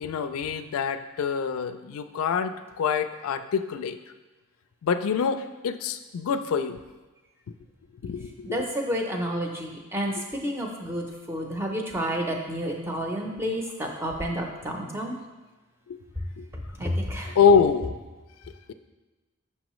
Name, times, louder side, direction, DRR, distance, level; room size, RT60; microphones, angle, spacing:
voice 1, 0.0-4.0 4.8-6.8 8.0-8.7 10.2-10.3 15.9-16.0 16.4-16.5 17.4-17.9, left 6 dB, 85° left, 10 dB, 0.3 m, -25 dB
voice 2, 8.5-10.1 10.4-15.2 16.8-17.3, equal, 10° right, 1 dB, 0.6 m, -30 dB
6.2 x 5.4 x 3.0 m, 1.2 s
head